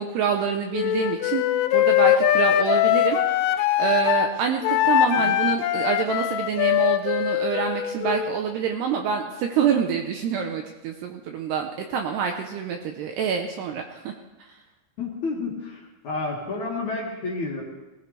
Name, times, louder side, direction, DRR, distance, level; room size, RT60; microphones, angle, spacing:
voice 1, 0.0-1.4 1.7-3.4 3.8-14.1 14.4-14.6, right 7 dB, 75° right, 3 dB, 2.5 m, -26 dB
Wind instrument woodwind instrument, 0.7-4.3 4.6-8.4, left 12 dB, 90° left, 3.3 m, -22 dB
voice 2, 15.0-17.6, left 3 dB, 50° left, -3 dB, 2.6 m, -30 dB
18.5 x 18.0 x 3.3 m, 1.1 s
omnidirectional pair, 5.5 m